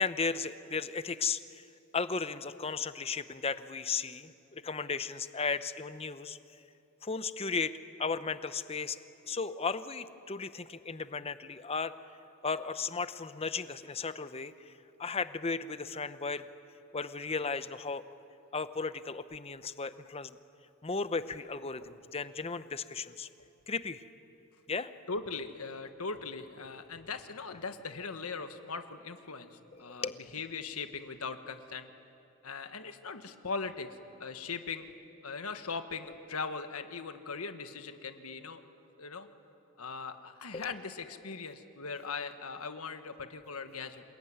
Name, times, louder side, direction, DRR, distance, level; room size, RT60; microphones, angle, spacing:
voice 1, 0.0-1.7 1.9-6.4 7.0-7.7 8.0-9.0 9.2-11.9 12.4-14.7 15.0-16.5 16.9-18.0 18.5-20.4 20.8-23.3 23.7-24.0 24.7-24.9 29.7-30.2 40.5-40.7, left 4 dB, 30° left, 12 dB, 0.8 m, -35 dB
voice 2, 25.1-31.9 32.4-33.9 34.2-34.9 35.2-38.6 39.0-39.3 39.8-44.0, left 4 dB, 90° left, 8 dB, 1.5 m, -40 dB
27.5 x 20.5 x 9.4 m, 2.7 s
head